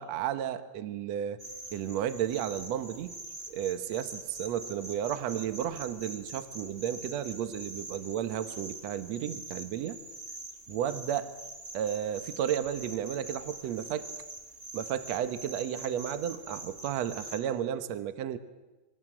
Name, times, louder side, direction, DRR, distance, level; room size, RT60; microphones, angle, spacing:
voice 1, 0.0-1.4 1.7-3.1 3.5-10.0 10.7-11.3 11.7-14.1 14.7-18.4, right 10 dB, 85° right, 11 dB, 1.5 m, -33 dB
sound 1, 1.4-17.4, right 2 dB, 25° right, 1.6 m, -44 dB
25.0 x 22.5 x 9.0 m, 1.1 s
omnidirectional pair, 4.8 m